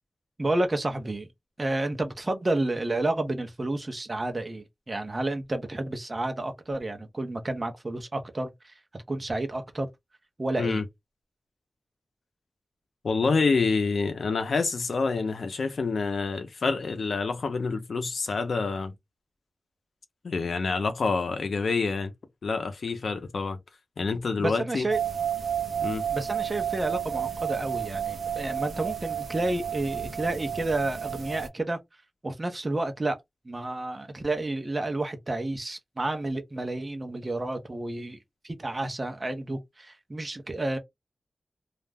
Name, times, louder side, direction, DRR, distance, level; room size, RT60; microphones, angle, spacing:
voice 1, 0.4-1.3 1.6-8.8 9.1-9.9 10.4-10.8 24.4-25.0 26.1-31.8 32.2-33.2 33.4-38.2 38.4-40.8, right 2 dB, 30° right, 0.7 m, -30 dB
voice 2, 13.0-18.9 20.2-22.1 22.4-23.6 24.0-24.9 25.8-26.0, left 4 dB, 80° left, 0.6 m, -27 dB
sound 1, 24.9-31.5, right 8 dB, 80° right, 0.5 m, -31 dB
2.4 x 2.1 x 3.3 m
wide cardioid pair, 115°, 0 cm